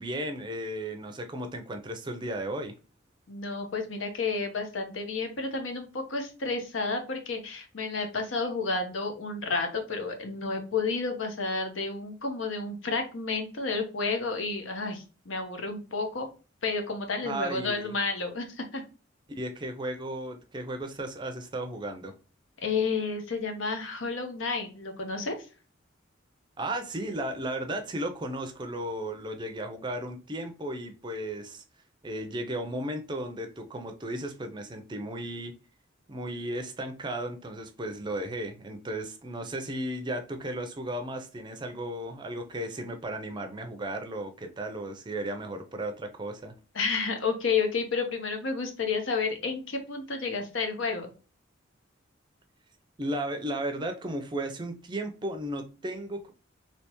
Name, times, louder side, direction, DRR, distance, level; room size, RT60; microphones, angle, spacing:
voice 1, 0.0-2.7 17.2-17.9 19.4-22.1 26.6-31.6 32.0-35.5 36.1-46.5 53.0-56.3, right 1 dB, 25° right, 0.5 m, -35 dB
voice 2, 3.3-16.3 16.6-18.8 22.6-25.3 46.7-51.1, left 4 dB, 80° left, 0.8 m, -31 dB
3.3 x 2.8 x 2.9 m
head